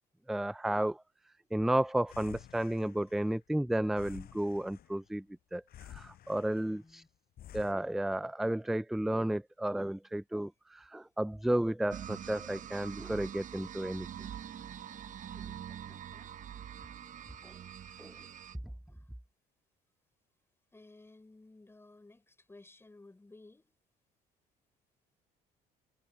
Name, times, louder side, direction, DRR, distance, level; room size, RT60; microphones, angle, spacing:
voice 1, 0.3-1.0 1.5-5.2 5.5-7.0 7.5-14.1 17.4-17.5 18.0-18.1, right 1 dB, ahead, 0.3 m, -32 dB
sound 1, 2.1-3.5 3.8-5.2 5.7-6.9 7.4-7.7, left 12 dB, 65° left, 7.3 m, -51 dB
voice 2, 6.6-7.1 15.2-16.3 17.8-18.0 18.9-19.1 20.7-23.8, left 2 dB, 15° left, 5.9 m, -57 dB
sound 2, 11.9-18.6, right 9 dB, 50° right, 1.0 m, -45 dB
cardioid pair, 110°, 17 cm